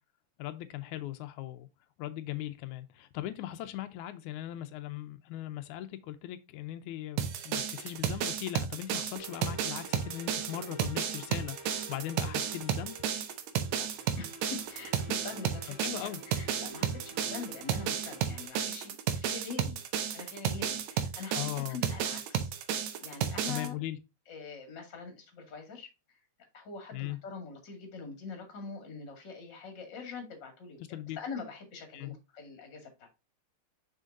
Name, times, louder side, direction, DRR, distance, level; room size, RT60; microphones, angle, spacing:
voice 1, 0.4-1.7 2.0-13.0 15.8-16.2 21.3-21.8 23.5-24.0 26.9-27.2 30.9-31.2 31.9-32.2, left 13 dB, 90° left, 2.1 m, -39 dB
sound 1, 7.2-23.7, right 8 dB, 75° right, 2.1 m, -33 dB
sound 2, 9.2-18.5, right 3 dB, 5° right, 2.1 m, -49 dB
voice 2, 14.2-19.8 20.1-22.5 23.0-23.8 24.3-25.9 26.5-30.8 31.1-33.1, left 4 dB, 40° left, 2.6 m, -44 dB
6.3 x 5.9 x 2.5 m
omnidirectional pair, 3.3 m